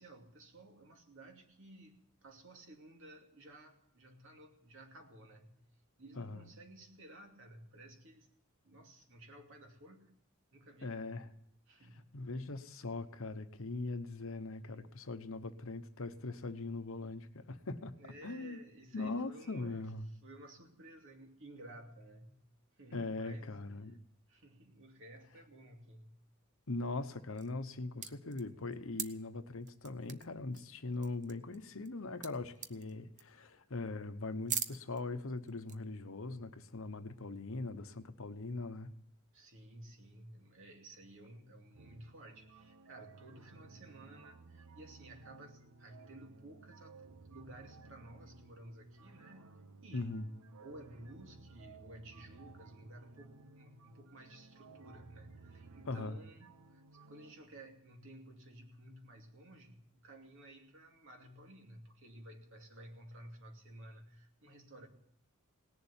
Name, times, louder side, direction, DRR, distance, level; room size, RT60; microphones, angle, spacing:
voice 1, 0.0-5.5 6.0-8.3 8.6-10.1 10.5-11.0 11.7-12.2 18.0-19.9 20.2-22.4 22.8-23.6 24.3-26.1 39.3-50.2 50.6-64.9, right 1 dB, 65° right, 2 dB, 2.6 m, -54 dB
voice 2, 10.8-11.3 12.1-17.9 18.2-18.6 18.9-20.1 22.9-24.0 26.7-38.9 49.9-50.3 55.9-56.2, left 3 dB, 65° left, 9 dB, 1.0 m, -41 dB
sound 1, 27.4-27.7 28.0-29.1 29.6-30.3 30.5-30.6 30.9-31.9 32.2-32.3 32.6-32.9 33.2-33.5 33.9-34.0 34.4-35.0 35.5-35.8, right 8 dB, 35° right, 0.8 m, -41 dB
sound 2, 41.7-57.3, right 4 dB, 90° right, 0.9 m, -57 dB
18.5 x 7.1 x 9.8 m, 0.79 s
head